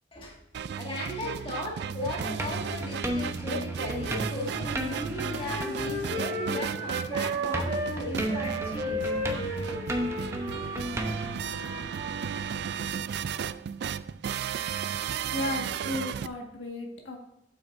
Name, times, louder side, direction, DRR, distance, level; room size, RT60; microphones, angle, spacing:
sound 1, 0.5-16.3, right 7 dB, 65° right, 0.3 m, -35 dB
voice 1, 0.8-9.0 9.4-9.6, left 1 dB, 30° left, -1 dB, 1.9 m, -36 dB
sound 2, 2.0-7.1 7.3-11.3, right 1 dB, 15° right, 0.9 m, -35 dB
Wind instrument woodwind instrument, 4.1-8.0 8.3-12.6, equal, 40° right, 1.6 m, -35 dB
voice 2, 15.3-17.2, left 1 dB, 80° left, 0 dB, 1.6 m, -34 dB
8.8 x 7.8 x 2.6 m, 0.83 s
head